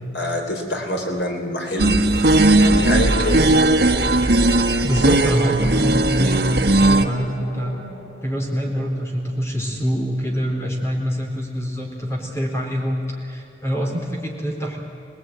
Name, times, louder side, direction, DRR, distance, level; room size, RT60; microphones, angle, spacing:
voice 1, 0.1-2.0 2.5-3.7, left 1 dB, 85° left, 2 dB, 4.0 m, -25 dB
sound 1, 1.8-7.1, right 2 dB, 65° right, 1.5 m, -17 dB
voice 2, 4.8-7.8 8.2-14.8, equal, 15° left, 1 dB, 4.1 m, -25 dB
sound 2, 4.9-10.0, left 1 dB, 40° left, 2.4 m, -41 dB
27.5 x 19.0 x 9.5 m, 2.7 s
head